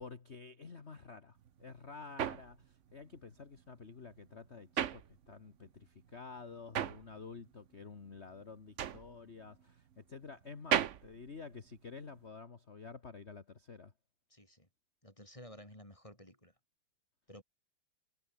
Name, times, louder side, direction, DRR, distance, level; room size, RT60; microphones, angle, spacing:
voice 1, 0.0-13.9, left 4 dB, 30° left, 1.8 m, -50 dB
sound 1, 1.4-5.7 6.0-12.2, right 9 dB, 70° right, 0.7 m, -38 dB
voice 2, 14.3-14.7 15.0-16.5 17.3-17.4, equal, 15° left, 6.8 m, -53 dB
omnidirectional pair, 2.4 m